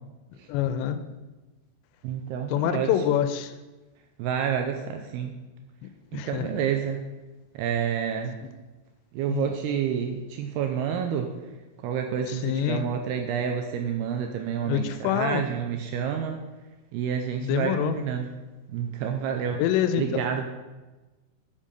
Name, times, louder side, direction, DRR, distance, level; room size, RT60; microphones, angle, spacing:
voice 1, 0.5-1.0 2.5-3.5 6.1-6.5 9.3-9.5 12.3-12.8 14.7-15.4 17.4-18.0 19.6-20.3, left 10 dB, 90° left, 10 dB, 2.8 m, -26 dB
voice 2, 2.0-3.2 4.2-5.3 6.1-7.0 7.5-8.4 9.1-11.3 11.8-16.4 16.9-18.3 18.7-19.6 20.0-20.5, right 8 dB, 80° right, 4 dB, 2.4 m, -29 dB
7.4 x 7.3 x 6.6 m, 1.2 s
omnidirectional pair, 5.0 m